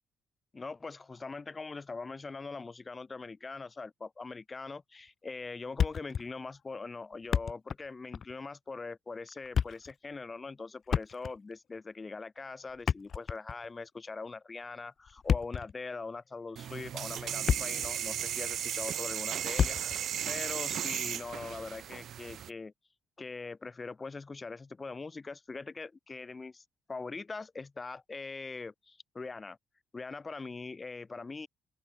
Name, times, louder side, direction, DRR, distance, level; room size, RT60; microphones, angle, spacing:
voice 1, 0.5-22.7 23.2-29.6 29.9-31.5, left 4 dB, 30° left, 2.8 m, -42 dB
Thump thud, 5.8-6.3 6.6-6.7 7.1-7.9 8.1-8.3 9.3-9.9 10.9-11.5 12.7-13.7 15.1-15.7 16.4-16.6 17.1-17.9 18.2-18.3 19.6-20.0, left 7 dB, 55° left, 0.4 m, -30 dB
sound 1, 16.6-22.5, right 10 dB, 65° right, 1.1 m, -35 dB
open air
cardioid pair, 90°, 0 cm